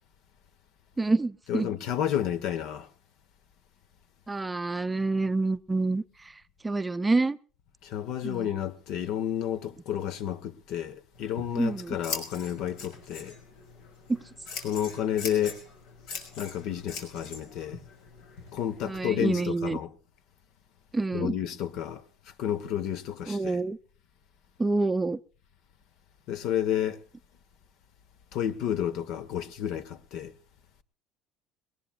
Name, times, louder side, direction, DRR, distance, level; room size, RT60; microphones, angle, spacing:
voice 1, 1.0-1.7 4.3-6.3 6.6-7.4 8.2-8.5 11.5-12.0 14.1-14.2 18.8-19.8 20.9-21.3 23.3-23.8 24.6-25.2, right 3 dB, 10° right, 0.6 m, -27 dB
voice 2, 1.5-2.9 7.8-13.3 14.6-15.6 16.4-17.8 18.5-19.9 21.1-22.0 22.4-23.6 26.3-27.0 28.3-30.3, left 10 dB, 65° left, 1.4 m, -31 dB
Scissors, 11.1-19.3, left 4 dB, 85° left, 5.9 m, -42 dB
22.0 x 19.5 x 2.5 m
cardioid pair, 135°, 0 cm